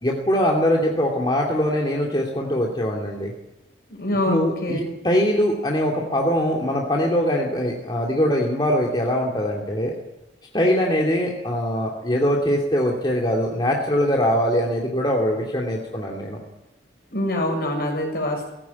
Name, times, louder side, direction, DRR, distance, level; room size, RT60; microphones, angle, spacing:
voice 1, 0.0-3.3 4.2-9.9 10.5-16.4, equal, 25° left, -1 dB, 2.5 m, -22 dB
voice 2, 3.9-4.9 17.1-18.5, left 1 dB, 55° left, 2 dB, 6.8 m, -25 dB
19.5 x 16.5 x 9.5 m, 0.94 s
head